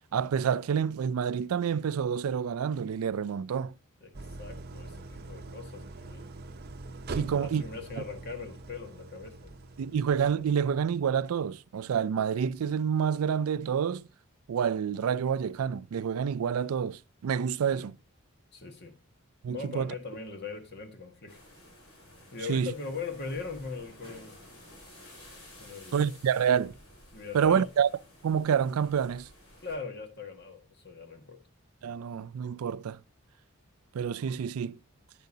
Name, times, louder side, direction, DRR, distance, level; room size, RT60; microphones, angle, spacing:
voice 1, 0.1-3.7 7.1-7.6 9.8-14.0 14.5-17.9 19.4-19.9 22.5-22.7 25.9-26.7 27.3-27.9 28.2-29.3 31.8-33.0 33.9-34.8, right 7 dB, 80° right, 0.4 m, -28 dB
voice 2, 4.0-6.3 7.2-9.6 17.7-17.9 18.5-19.0 19.5-21.4 22.3-24.4 25.6-26.2 27.1-27.7 29.6-31.4, left 4 dB, 50° left, 1.6 m, -40 dB
Idling, 4.1-11.2, right 2 dB, 45° right, 0.7 m, -43 dB
sound 1, 21.3-29.7, left 1 dB, 80° left, 5.1 m, -53 dB
10.5 x 9.2 x 2.7 m
head